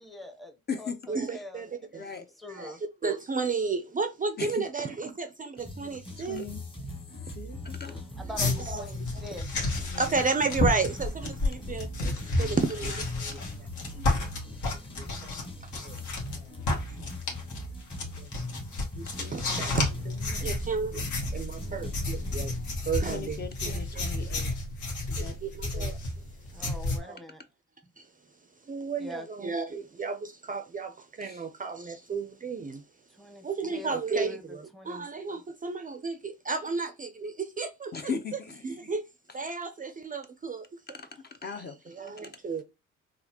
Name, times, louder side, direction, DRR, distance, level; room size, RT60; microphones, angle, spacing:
voice 1, 0.0-1.9 2.2-2.8 7.8-9.5 26.5-27.4 29.0-29.3 33.1-33.9 34.2-35.1, left 1 dB, ahead, 0.8 m, -44 dB
voice 2, 1.1-2.0 2.5-2.7 3.0-6.4 8.7-9.2 10.0-13.4 13.9-14.1 15.0-16.0 16.4-16.5 17.0-17.1 18.2-18.3 19.0-21.1 21.3-24.5 25.2-26.0 26.5-26.6 27.0-27.2 28.0-28.1 28.7-32.8 33.4-38.1 38.6-39.0 39.3-40.7 41.9-42.6, right 4 dB, 30° right, 0.4 m, -33 dB
voice 3, 1.9-2.3 4.4-4.6 6.2-6.6 7.2-8.0 9.8-10.2 14.9-15.5 23.1-24.5 25.1-25.3 31.2-31.4 37.9-38.6 41.0-41.9, left 5 dB, 35° left, 0.6 m, -38 dB
sound 1, 5.6-22.8, left 1 dB, 15° left, 1.3 m, -40 dB
sound 2, 8.4-16.4 16.6-27.0, left 2 dB, 75° left, 1.4 m, -31 dB
3.9 x 2.4 x 2.8 m
cardioid pair, 90°, 30 cm